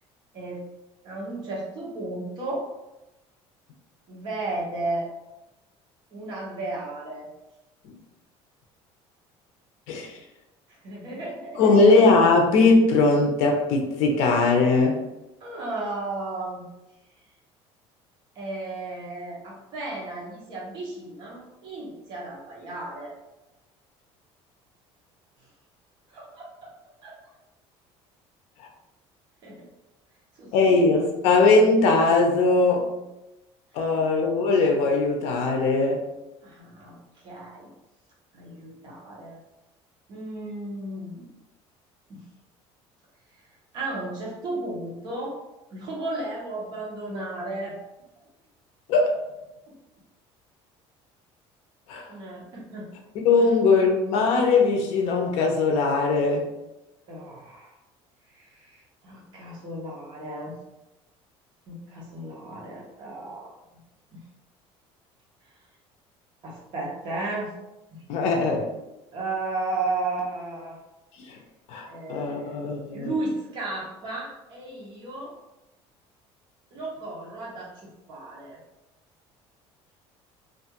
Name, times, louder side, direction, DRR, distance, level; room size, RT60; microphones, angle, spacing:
voice 1, 0.3-0.7 1.0-2.6 4.1-5.1 6.1-7.3 10.7-11.9 15.4-16.7 18.3-23.1 26.1-26.7 27.0-27.2 29.4-29.7 30.3-30.8 33.7-33.8 36.4-37.7 38.3-39.4 40.1-41.3 42.1-42.3 43.4-43.5 43.7-45.4 45.7-47.8 49.7-49.8 52.1-52.9 53.4-53.6 57.1-57.7 58.3-60.6 61.7-63.8 64.1-64.2 66.4-67.5 67.9-68.0 69.1-70.8 71.9-72.6 72.9-75.3 76.7-78.6, right 2 dB, 40° right, -3 dB, 0.8 m, -34 dB
voice 2, 11.6-15.0 30.5-32.9 33.7-36.0 48.9-49.2 51.9-52.1 53.2-56.5 68.1-68.7 71.3-71.4 71.7-73.1, left 3 dB, 70° left, 2 dB, 0.5 m, -20 dB
2.4 x 2.3 x 2.8 m, 0.96 s
cardioid pair, 170°, 12 cm